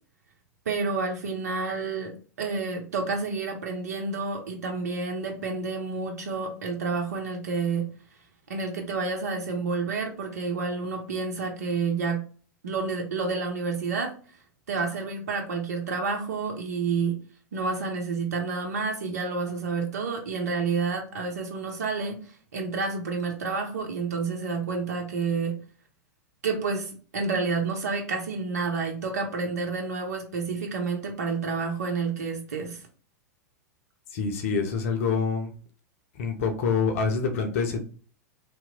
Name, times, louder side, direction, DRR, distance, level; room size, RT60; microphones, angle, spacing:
voice 1, 0.7-7.9 8.5-12.2 12.6-14.1 14.7-17.2 17.5-22.2 22.5-25.6 26.4-32.8, right 4 dB, 65° right, 2 dB, 0.7 m, -29 dB
voice 2, 34.1-35.5 36.2-37.8, left 5 dB, 55° left, 4 dB, 0.6 m, -26 dB
2.8 x 2.0 x 4.0 m, 0.41 s
figure-of-eight pair, 95°, 9 cm